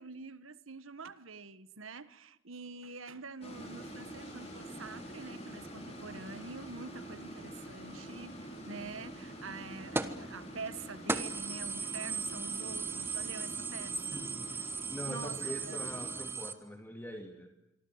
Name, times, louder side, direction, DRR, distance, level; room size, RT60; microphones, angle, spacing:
voice 1, 0.0-14.6 15.0-15.8, right 4 dB, 80° right, 14 dB, 1.5 m, -46 dB
sound 1, 3.4-16.3, equal, 30° left, 5.9 m, -46 dB
sound 2, 10.0-10.2 10.7-10.8 11.1-16.5, right 4 dB, 10° right, 1.3 m, -37 dB
voice 2, 14.1-14.6 14.9-17.5, equal, 10° left, 4 dB, 2.3 m, -43 dB
26.5 x 24.5 x 8.0 m, 0.85 s
head